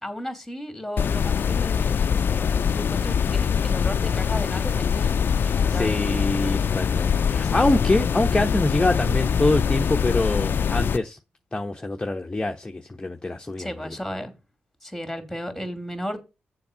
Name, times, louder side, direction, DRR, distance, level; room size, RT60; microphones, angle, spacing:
voice 1, 0.0-5.2 5.5-6.2 7.4-7.8 13.6-14.3 14.8-16.2, equal, ahead, 2.9 m, -34 dB
sound 1, 1.0-11.0, left 7 dB, 60° left, 0.5 m, -23 dB
voice 2, 5.4-11.2 11.5-13.7, left 2 dB, 20° left, 1.0 m, -25 dB
7.0 x 4.7 x 6.7 m
supercardioid pair, 50°, 4 cm